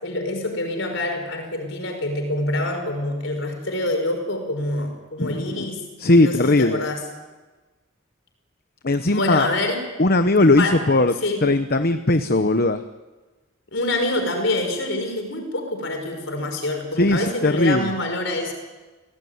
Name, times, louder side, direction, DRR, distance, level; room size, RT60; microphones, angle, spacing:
voice 1, 0.0-5.9 6.2-7.0 9.1-9.8 10.6-10.9 11.2-11.5 13.7-18.5, left 1 dB, 65° left, 5 dB, 5.8 m, -26 dB
voice 2, 5.2-5.7 6.0-6.8 8.8-9.5 10.0-11.1 11.4-12.8 17.0-17.9, left 2 dB, 50° left, 9 dB, 1.0 m, -18 dB
29.0 x 18.0 x 9.5 m, 1.2 s
head